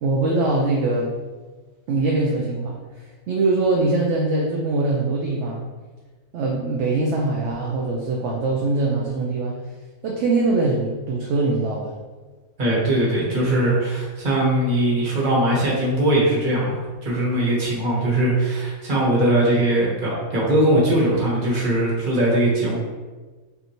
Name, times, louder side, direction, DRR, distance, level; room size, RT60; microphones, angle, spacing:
voice 1, 0.0-1.1 1.9-5.6 6.3-9.6 10.0-11.9, right 2 dB, 65° right, -2 dB, 0.8 m, -22 dB
voice 2, 12.6-22.8, right 1 dB, 35° right, -6 dB, 1.4 m, -20 dB
5.5 x 2.7 x 2.9 m, 1.3 s
omnidirectional pair, 1.5 m